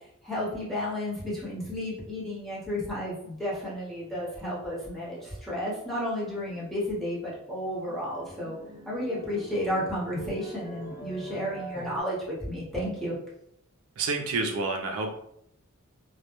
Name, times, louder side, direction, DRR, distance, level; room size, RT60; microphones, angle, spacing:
voice 1, 0.2-8.6 8.8-12.2 12.5-13.2, left 1 dB, ahead, -8 dB, 0.9 m, -32 dB
sound 1, 3.9-6.2 6.5-7.0 7.3-12.0, right 3 dB, 25° left, 1.0 m, -45 dB
voice 2, 14.0-15.1, right 3 dB, 75° right, 3 dB, 0.4 m, -28 dB
2.1 x 2.1 x 2.9 m, 0.73 s
head